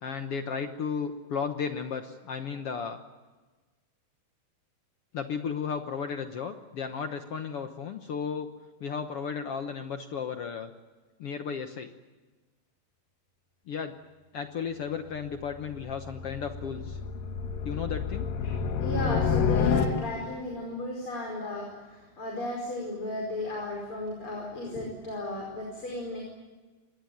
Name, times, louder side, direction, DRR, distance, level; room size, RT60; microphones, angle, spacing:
voice 1, 0.0-3.0 5.1-8.5 8.8-10.7 11.2-11.9 13.7-13.9 14.3-17.0 17.6-18.3, left 6 dB, 65° left, 7 dB, 1.5 m, -34 dB
sound 1, 15.2-20.4, left 6 dB, 80° left, 3.1 m, -29 dB
voice 2, 18.4-26.2, left 1 dB, 35° left, -1 dB, 5.7 m, -35 dB
25.0 x 20.0 x 9.4 m, 1.3 s
omnidirectional pair, 4.0 m